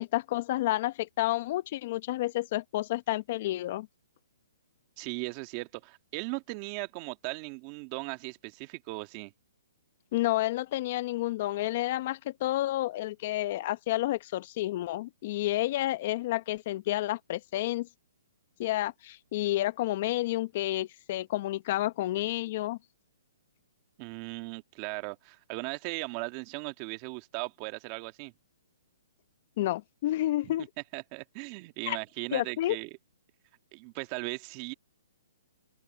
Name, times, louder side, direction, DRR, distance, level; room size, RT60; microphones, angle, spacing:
voice 1, 0.0-3.9 10.1-17.9 18.6-22.8 29.6-30.7 31.9-32.0 32.3-32.8, left 16 dB, 45° left, 0.8 m, -30 dB
voice 2, 5.0-9.3 24.0-28.3 30.9-32.9 33.7-34.7, right 26 dB, 35° right, 1.8 m, -38 dB
open air
hypercardioid pair, 145°, 0 cm